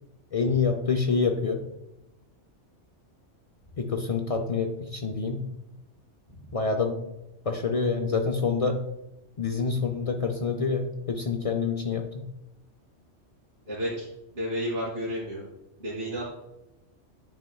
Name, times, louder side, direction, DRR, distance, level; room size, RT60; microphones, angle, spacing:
voice 1, 0.3-1.6 3.8-5.4 6.5-7.0 7.4-8.8 9.4-12.2, left 5 dB, 65° left, 4 dB, 0.3 m, -27 dB
voice 2, 13.7-14.1 14.3-15.4 15.8-16.2, equal, 55° right, -11 dB, 2.6 m, -31 dB
9.7 x 4.3 x 2.3 m, 0.91 s
omnidirectional pair, 1.2 m